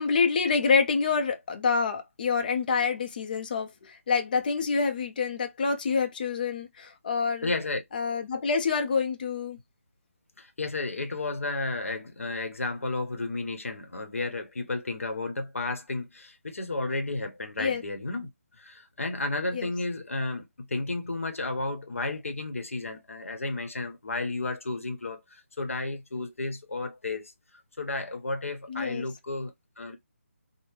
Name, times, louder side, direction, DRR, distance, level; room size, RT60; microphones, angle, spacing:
voice 1, 0.0-7.5 7.9-9.6 17.6-17.8 19.5-19.7 28.7-29.1, left 5 dB, 40° left, 0.5 m, -27 dB
voice 2, 7.4-7.8 10.4-18.3 18.6-27.3 27.8-30.0, left 2 dB, 75° left, 0.9 m, -32 dB
3.5 x 2.1 x 3.2 m
figure-of-eight pair, 155°, 7 cm